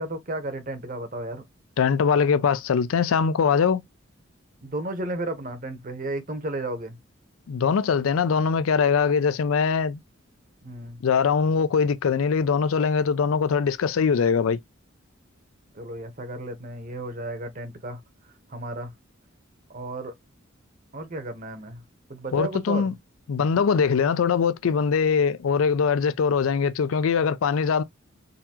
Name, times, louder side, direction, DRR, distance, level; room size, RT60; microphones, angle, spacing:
voice 1, 0.0-1.4 4.6-7.0 10.6-11.0 15.7-18.0 18.5-18.9 19.7-20.1 20.9-21.8 22.1-22.9, right 1 dB, 40° right, 1.0 m, -33 dB
voice 2, 1.8-3.8 7.5-10.0 11.0-14.6 22.3-22.9 23.3-27.8, left 6 dB, 90° left, 0.4 m, -22 dB
3.9 x 2.7 x 2.8 m
head